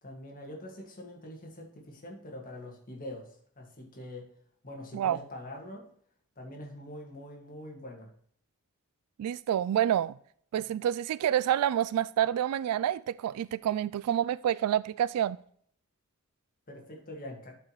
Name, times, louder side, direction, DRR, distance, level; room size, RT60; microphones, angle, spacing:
voice 1, 0.0-4.3 4.6-5.9 6.4-8.1 16.7-17.5, left 1 dB, 40° left, 2.0 m, -44 dB
voice 2, 9.2-10.1 10.5-15.4, right 10 dB, 90° right, 0.3 m, -28 dB
12.0 x 5.4 x 3.1 m
head